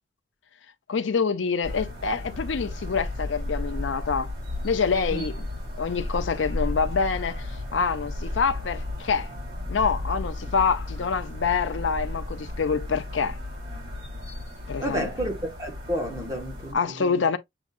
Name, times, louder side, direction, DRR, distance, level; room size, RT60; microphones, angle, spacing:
voice 1, 0.9-4.3 4.6-5.4 5.8-9.3 9.7-13.4 14.7-15.1 16.7-17.4, left 5 dB, 75° left, 0.5 m, -26 dB
sound 1, 1.6-16.7, left 2 dB, 50° right, 3.1 m, -34 dB
voice 2, 14.8-15.3 15.6-17.2, equal, 15° right, 1.1 m, -31 dB
7.1 x 2.7 x 2.4 m
head